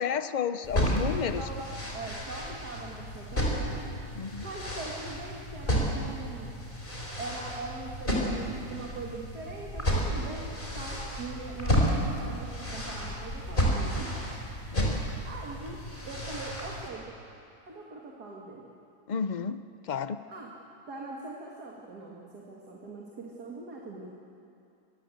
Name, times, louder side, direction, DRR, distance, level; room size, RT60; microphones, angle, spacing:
voice 1, 0.0-1.4 4.2-4.5 14.7-15.0 19.1-20.2, left 7 dB, 55° left, 12 dB, 0.5 m, -31 dB
sound 1, 0.6-16.9, equal, 30° left, 4.4 m, -32 dB
voice 2, 1.9-3.8 4.4-6.6 7.2-14.3 15.2-17.1 17.7-18.7 20.3-20.5 20.9-24.1, right 3 dB, 75° right, -2 dB, 2.6 m, -41 dB
24.0 x 20.5 x 7.9 m, 2.6 s
omnidirectional pair, 1.7 m